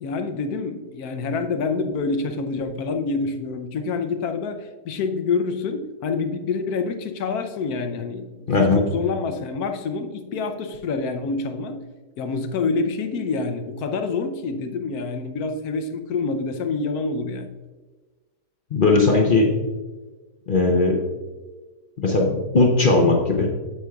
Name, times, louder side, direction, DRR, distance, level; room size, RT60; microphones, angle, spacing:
voice 1, 0.0-8.5 8.7-11.8 12.2-17.5, left 4 dB, 70° left, 7 dB, 1.1 m, -27 dB
voice 2, 8.5-8.8 18.7-19.6 20.5-21.0 22.0-23.6, left 3 dB, 45° left, 1 dB, 0.6 m, -18 dB
8.9 x 7.9 x 2.3 m, 1.3 s
omnidirectional pair, 1.8 m